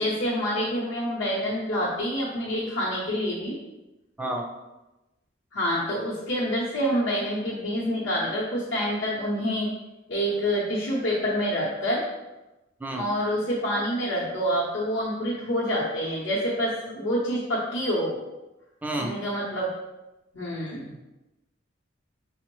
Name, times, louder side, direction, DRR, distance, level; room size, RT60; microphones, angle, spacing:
voice 1, 0.0-3.6 5.5-9.7 10.1-12.1 12.9-18.2 19.0-19.7 20.3-20.9, equal, 75° left, -8 dB, 0.7 m, -27 dB
voice 2, 18.8-19.1, right 1 dB, 10° right, 2 dB, 0.4 m, -29 dB
5.1 x 2.0 x 3.0 m, 1.0 s
head